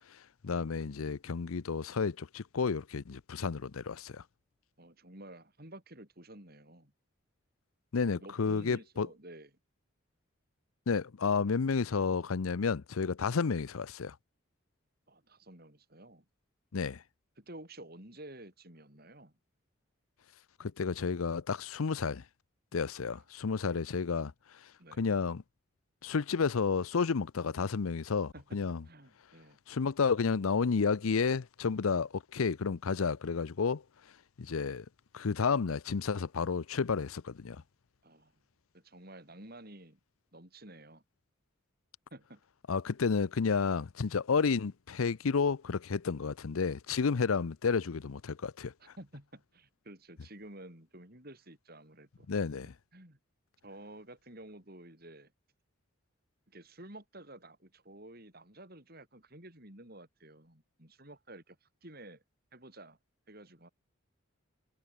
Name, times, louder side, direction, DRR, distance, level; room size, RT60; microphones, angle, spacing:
voice 1, 0.4-4.2 7.9-9.1 10.9-14.1 16.7-17.0 20.6-22.2 22.7-24.3 25.0-25.4 26.0-28.8 29.7-33.8 34.4-34.9 35.1-37.6 42.7-48.7 52.3-52.7, left 5 dB, 90° left, 0.6 m, -31 dB
voice 2, 4.8-6.9 8.1-9.5 15.1-16.2 17.4-19.3 23.1-23.2 24.8-25.0 28.3-28.6 28.8-29.6 38.0-38.3 38.7-40.0 40.3-41.0 42.1-42.4 48.8-52.3 52.9-53.2 53.6-55.3 56.5-62.2 62.5-63.0 63.3-63.7, right 1 dB, 45° right, 6.4 m, -51 dB
head